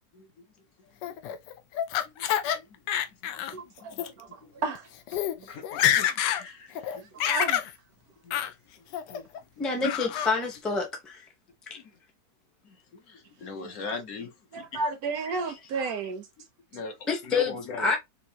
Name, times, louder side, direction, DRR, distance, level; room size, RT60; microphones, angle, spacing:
voice 1, 0.1-0.4 0.8-1.1 2.0-2.8 3.2-4.0 4.4-4.5 5.4-7.2 8.2-8.4 8.8-9.3 9.6-9.9 11.7-12.0 12.6-14.8 16.7-17.9, left 4 dB, 60° left, 1.2 m, -42 dB
Laughter, 1.0-2.6 2.9-3.5 3.9-4.1 4.8-4.9 5.1-5.3 5.6-6.4 6.8-7.7 8.3-8.5 8.9-9.4 9.8-10.3, left 11 dB, 85° left, 1.2 m, -27 dB
voice 2, 3.5-4.3 4.6-4.8 7.3-7.6 14.5-16.2, right 4 dB, 70° right, 1.0 m, -32 dB
voice 3, 9.6-11.2 11.7-11.8 15.5-15.6 17.1-18.0, left 4 dB, ahead, 0.5 m, -28 dB
4.6 x 2.5 x 2.8 m
omnidirectional pair, 1.8 m